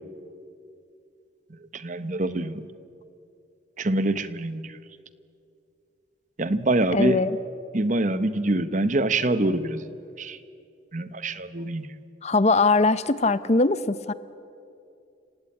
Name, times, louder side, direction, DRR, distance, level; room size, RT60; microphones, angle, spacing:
voice 1, 1.7-2.7 3.8-4.8 6.4-7.3 7.7-10.4 10.9-11.9, right 2 dB, 40° right, 13 dB, 1.0 m, -25 dB
voice 2, 6.9-7.3 12.2-14.1, left 3 dB, 35° left, 15 dB, 0.6 m, -21 dB
29.5 x 17.0 x 8.9 m, 2.5 s
head